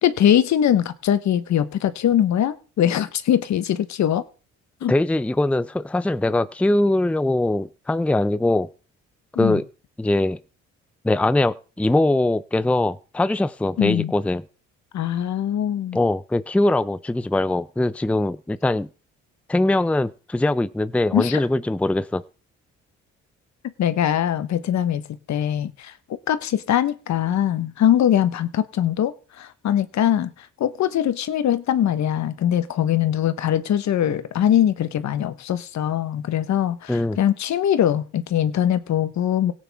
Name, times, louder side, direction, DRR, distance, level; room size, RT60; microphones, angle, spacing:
voice 1, 0.0-4.2 4.8-4.9 9.3-9.6 13.8-14.1 14.9-16.0 21.1-21.4 23.8-25.0 25.3-25.9 26.3-39.5, left 10 dB, 65° left, 1.2 m, -22 dB
voice 2, 4.9-8.7 9.4-9.6 10.0-10.4 11.0-14.4 15.9-18.9 19.5-22.2 36.9-37.2, left 2 dB, 5° left, 0.5 m, -21 dB
17.5 x 9.0 x 3.6 m
cardioid pair, 90°, 30 cm